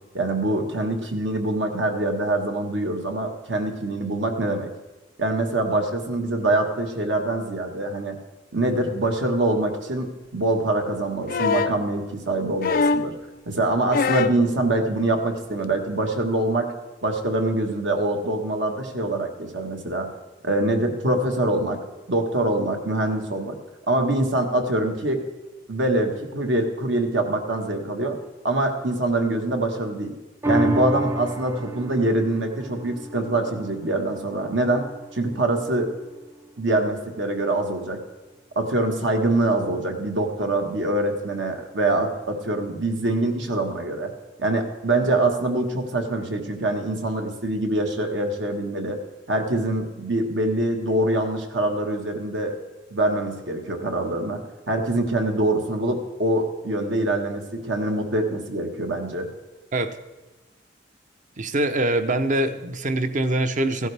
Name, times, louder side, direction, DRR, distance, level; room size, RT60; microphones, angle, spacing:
voice 1, 0.1-4.7 5.2-8.2 8.5-13.1 13.5-16.7 17.0-20.1 20.4-21.8 22.1-23.6 23.9-25.2 25.7-28.2 28.4-30.2 30.4-35.9 36.6-38.0 38.5-44.1 44.4-49.0 49.3-52.6 52.9-54.4 54.7-59.3, right 2 dB, 70° right, 4 dB, 1.5 m, -24 dB
sound 1, 11.3-11.8 12.6-13.2 13.9-14.4 15.6-15.7, left 4 dB, 50° left, 0.4 m, -23 dB
sound 2, 30.4-37.1 37.6-37.7, right 1 dB, 15° right, 0.5 m, -31 dB
voice 2, 61.4-63.9, right 1 dB, 45° right, 10 dB, 0.7 m, -23 dB
16.0 x 11.5 x 3.4 m, 1.2 s
head